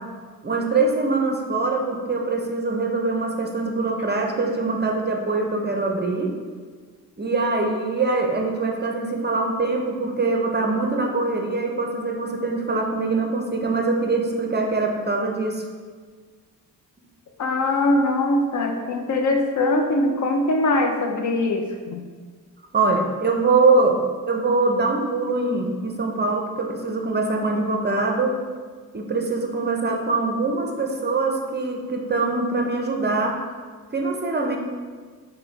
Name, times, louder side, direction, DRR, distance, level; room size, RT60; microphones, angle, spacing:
voice 1, 0.4-6.3 7.2-15.7 22.7-24.0 24.3-28.3 28.9-33.4 33.9-34.6, right 3 dB, 25° right, 1 dB, 0.6 m, -23 dB
voice 2, 17.4-22.0, left 2 dB, 45° left, 4 dB, 0.6 m, -22 dB
5.5 x 2.2 x 3.9 m, 1.5 s
cardioid pair, 65°, 40 cm